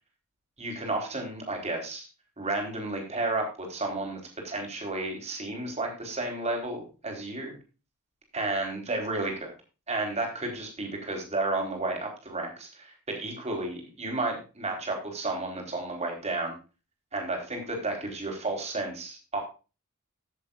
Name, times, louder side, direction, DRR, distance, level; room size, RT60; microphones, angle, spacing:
voice 1, 0.6-2.1 2.4-7.6 8.3-9.5 9.9-16.6 17.1-19.4, right 2 dB, 30° right, 1 dB, 4.4 m, -32 dB
16.0 x 7.9 x 2.6 m, 0.31 s
head